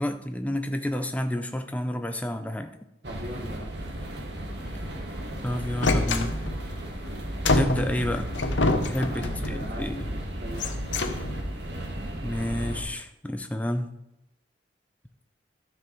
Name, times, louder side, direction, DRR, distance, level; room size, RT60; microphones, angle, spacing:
voice 1, 0.0-2.8 5.4-6.5 7.5-8.3 8.8-10.1 12.2-13.9, left 1 dB, 10° left, 7 dB, 0.6 m, -30 dB
voice 2, 3.0-3.7 9.0-10.7, equal, 50° right, 2 dB, 1.7 m, -40 dB
sound 1, 3.0-12.8, right 1 dB, 70° right, 1.7 m, -34 dB
sound 2, 5.8-6.7 7.4-9.8 10.5-11.6, left 2 dB, 90° left, 0.9 m, -27 dB
13.0 x 6.5 x 4.6 m, 0.90 s
head